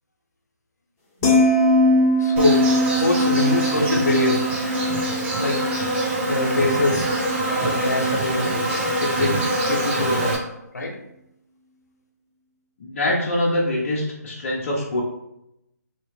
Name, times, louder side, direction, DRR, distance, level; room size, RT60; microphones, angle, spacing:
sound 1, 1.2-7.5 7.8-8.2, left 1 dB, 25° left, 1.1 m, -22 dB
voice 1, 2.2-4.4 5.4-5.6 6.3-7.1 7.6-8.6 9.0-10.4 10.7-10.9, left 2 dB, 65° left, 1 dB, 1.0 m, -24 dB
Insect, 2.4-10.4, right 2 dB, 40° right, 1.3 m, -25 dB
voice 2, 12.8-15.0, left 1 dB, 40° left, -4 dB, 0.8 m, -24 dB
3.2 x 2.9 x 3.3 m, 0.83 s
figure-of-eight pair, 145°, 10 cm